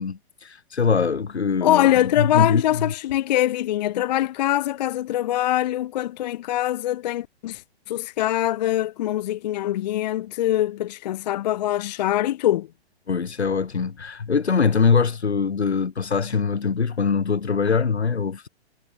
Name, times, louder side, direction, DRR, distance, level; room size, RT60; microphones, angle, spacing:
voice 1, 0.0-2.9 13.1-18.5, left 5 dB, 80° left, 2.5 m, -23 dB
voice 2, 1.6-7.6 7.9-12.7, left 13 dB, 40° left, 0.5 m, -23 dB
figure-of-eight pair, 120°, 32 cm